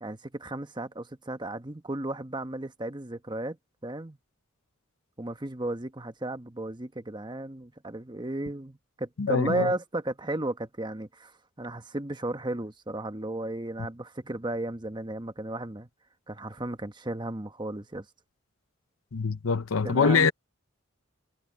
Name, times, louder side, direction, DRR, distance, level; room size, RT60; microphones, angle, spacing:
voice 1, 0.0-3.6 3.8-4.2 5.2-15.9 16.3-18.1 19.8-20.3, right 1 dB, 20° right, 1.1 m, -34 dB
voice 2, 9.2-9.7 19.1-20.3, left 5 dB, 75° left, 0.7 m, -24 dB
head